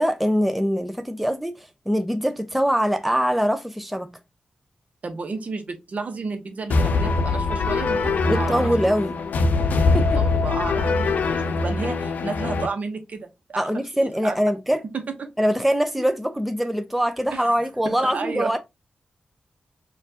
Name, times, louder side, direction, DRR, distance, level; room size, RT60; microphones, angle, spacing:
voice 1, 0.0-4.1 8.2-9.2 9.9-10.2 13.6-14.8 15.4-18.6, equal, 5° right, 0.5 m, -23 dB
voice 2, 5.0-8.7 10.2-13.7 14.0-14.4 14.9-15.3 17.3-17.4 17.8-18.5, right 4 dB, 60° right, 0.9 m, -32 dB
sound 1, 6.7-12.7, left 3 dB, 80° left, 0.4 m, -22 dB
4.4 x 2.4 x 2.7 m
cardioid pair, 70°, 3 cm